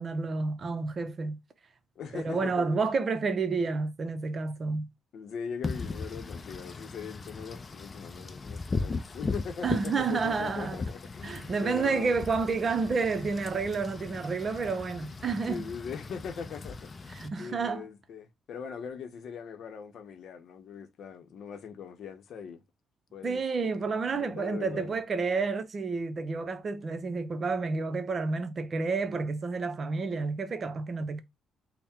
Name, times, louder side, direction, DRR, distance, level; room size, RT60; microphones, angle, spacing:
voice 1, 0.0-1.4 2.1-4.9 9.6-10.8 11.2-15.7 17.2-17.8 23.2-31.2, right 4 dB, 45° right, 0.6 m, -30 dB
voice 2, 2.0-2.7 5.1-12.2 15.2-16.8 17.4-22.6 23.1-25.0, left 6 dB, 65° left, 0.7 m, -41 dB
Wind / Rain, 5.6-17.3, left 3 dB, 30° left, 0.4 m, -38 dB
3.5 x 2.1 x 4.2 m
cardioid pair, 90°, 0 cm